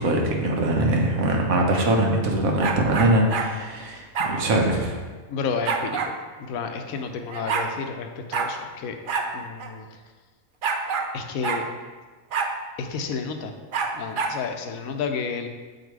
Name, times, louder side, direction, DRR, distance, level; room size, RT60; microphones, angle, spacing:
voice 1, 0.0-5.0, right 1 dB, 80° right, 1 dB, 1.4 m, -22 dB
sound 1, 2.6-3.5 4.1-4.3 5.7-6.1 7.0-7.1 7.3-7.7 8.3-8.5 9.1-9.3 9.6-9.7 10.6-11.1 11.4-11.6 12.3-12.5 13.7-14.4, right 5 dB, 60° right, 0.6 m, -26 dB
voice 2, 5.3-6.1 6.4-9.0 9.3-9.9 11.1-11.6 12.8-13.5 13.9-15.5, left 5 dB, 90° left, 6 dB, 1.1 m, -31 dB
7.1 x 4.0 x 4.6 m, 1.4 s
omnidirectional pair, 1.4 m